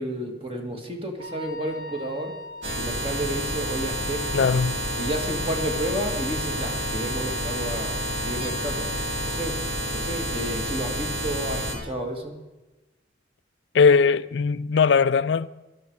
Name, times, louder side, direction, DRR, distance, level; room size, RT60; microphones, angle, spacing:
voice 1, 0.0-2.3 2.8-4.5 5.0-8.0 8.2-8.9 9.3-9.5 9.9-12.4, right 1 dB, 30° right, 2.0 m, -31 dB
Wind instrument woodwind instrument, 1.2-9.4, left 2 dB, 90° right, 6.8 m, -39 dB
sound 1, 2.6-11.7, right 1 dB, 70° right, 3.7 m, -29 dB
voice 2, 4.3-4.8 13.7-15.5, left 5 dB, 70° left, 0.4 m, -19 dB
18.0 x 13.0 x 4.7 m
head